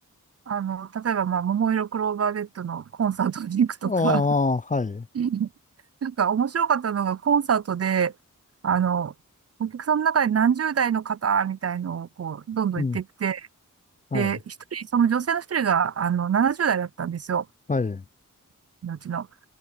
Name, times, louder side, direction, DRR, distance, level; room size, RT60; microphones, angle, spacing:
voice 1, 0.5-4.2 5.2-5.5 6.0-8.1 8.6-9.1 9.6-13.5 14.1-17.5 18.8-19.3, right 7 dB, 50° right, 0.5 m, -25 dB
voice 2, 3.8-5.1 12.7-13.0 14.1-14.4 17.7-18.0, left 3 dB, 25° left, 0.5 m, -25 dB
cardioid pair, 45°, 33 cm